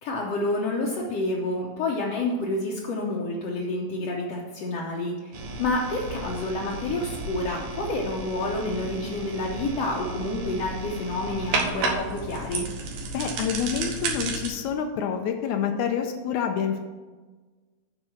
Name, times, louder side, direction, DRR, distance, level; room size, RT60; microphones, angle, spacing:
voice 1, 0.0-12.7, left 2 dB, 65° left, -3 dB, 1.8 m, -29 dB
sound 1, 5.3-14.5, right 3 dB, 75° right, 2.4 m, -33 dB
voice 2, 13.1-16.8, left 7 dB, 85° left, 4 dB, 2.1 m, -27 dB
9.0 x 4.8 x 6.4 m, 1.3 s
omnidirectional pair, 3.4 m